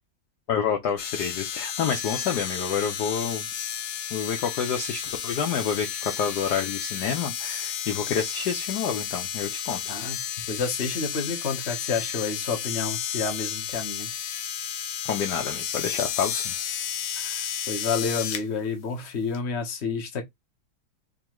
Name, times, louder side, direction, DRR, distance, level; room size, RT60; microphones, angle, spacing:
voice 1, 0.5-3.5 4.1-9.8 15.0-16.5, left 7 dB, 65° left, 1.1 m, -28 dB
sound 1, 1.0-18.4 19.3-19.4, left 9 dB, 85° left, 1.6 m, -32 dB
voice 2, 10.5-14.1 17.2-20.2, left 5 dB, 40° left, 1.1 m, -30 dB
3.8 x 3.1 x 3.0 m
omnidirectional pair, 2.3 m